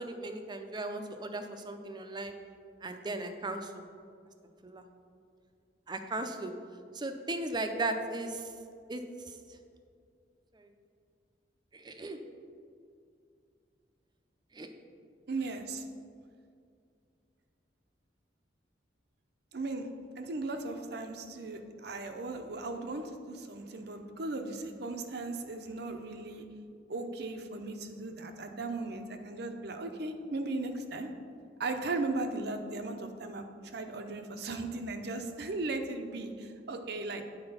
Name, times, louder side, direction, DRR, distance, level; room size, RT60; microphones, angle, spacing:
voice 1, 0.0-2.3 2.8-3.8 4.6-4.8 5.9-6.5 6.9-8.5 8.9-9.3 10.5-10.7 11.7-12.2 14.5-14.7, right 2 dB, 25° right, 6 dB, 0.5 m, -37 dB
voice 2, 15.3-15.8 19.5-19.9 20.2-26.4 26.9-31.1 31.6-33.5 33.7-37.2, right 2 dB, 65° right, 6 dB, 0.6 m, -37 dB
8.8 x 4.4 x 5.6 m, 2.3 s
head